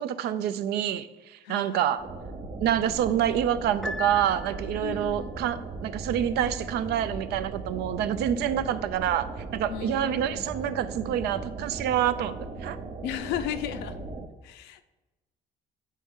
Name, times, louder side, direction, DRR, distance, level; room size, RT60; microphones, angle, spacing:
voice 1, 0.0-2.0 2.6-12.8, right 10 dB, 75° right, 13 dB, 0.4 m, -27 dB
voice 2, 1.4-1.9 4.8-5.3 9.7-10.4 13.0-14.0 14.4-14.8, left 11 dB, 90° left, 10 dB, 0.5 m, -35 dB
sound 1, 2.0-14.3, right 3 dB, 35° right, 0.6 m, -38 dB
Piano, 3.8-5.1, left 3 dB, ahead, 0.3 m, -37 dB
8.2 x 4.2 x 3.6 m, 1.1 s
cardioid pair, 110°, 17 cm